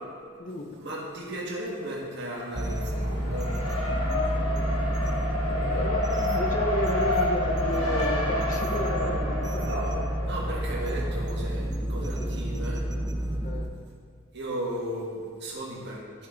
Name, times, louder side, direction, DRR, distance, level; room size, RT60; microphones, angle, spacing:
voice 1, 0.8-3.5 9.6-9.9 10.2-12.8 14.3-16.3, right 1 dB, 50° right, -4 dB, 1.6 m, -35 dB
Race car auto racing, 2.3-11.4, left 2 dB, 80° left, 1.6 m, -30 dB
sound 1, 2.5-13.7, right 1 dB, 20° right, 0.3 m, -29 dB
voice 2, 5.4-10.1 11.9-12.4 13.4-13.7, left 1 dB, 40° left, 3 dB, 0.8 m, -33 dB
11.0 x 5.3 x 3.9 m, 2.1 s
head